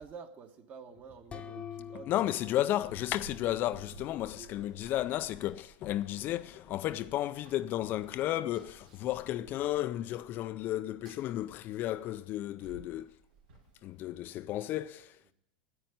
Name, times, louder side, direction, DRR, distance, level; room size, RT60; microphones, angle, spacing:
voice 1, 0.0-2.3 4.3-4.5, right 6 dB, 35° right, 1.4 m, -48 dB
sound 1, 1.3-4.1, left 8 dB, 25° left, 0.9 m, -47 dB
voice 2, 2.1-13.2 13.8-15.2, left 13 dB, 40° left, 0.4 m, -33 dB
Run, 2.8-14.2, right 2 dB, 75° right, 2.7 m, -56 dB
9.3 x 8.7 x 9.3 m
supercardioid pair, 120°, 5 cm